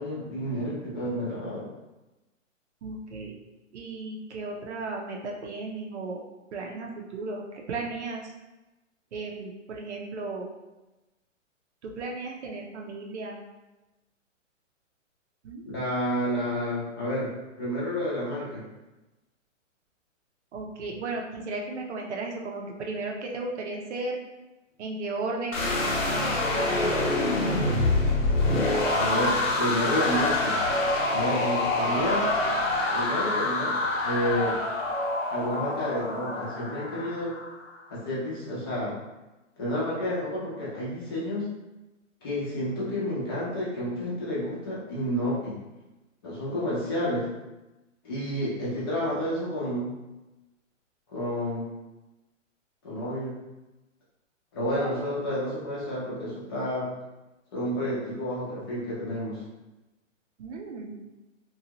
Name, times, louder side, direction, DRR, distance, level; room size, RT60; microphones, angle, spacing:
voice 1, 0.0-1.7 15.7-18.7 29.0-30.5 31.1-32.2 32.9-34.6 35.3-37.3 37.9-39.0 39.6-41.5 42.2-45.6 46.2-47.3 48.0-49.9 51.1-51.7 52.8-53.3 54.5-56.9 57.5-59.4, equal, 20° left, -8 dB, 0.6 m, -30 dB
voice 2, 2.8-3.3 3.7-6.2 6.5-8.3 9.1-10.5 11.8-13.4 15.4-15.6 20.5-24.2 24.8-25.7 26.1-27.0 54.7-55.0 60.4-61.0, right 3 dB, 60° right, 0 dB, 0.7 m, -35 dB
sound 1, 25.5-37.6, left 2 dB, 80° left, 1.0 m, -26 dB
2.6 x 2.4 x 2.9 m, 1.0 s
hypercardioid pair, 160°, 39 cm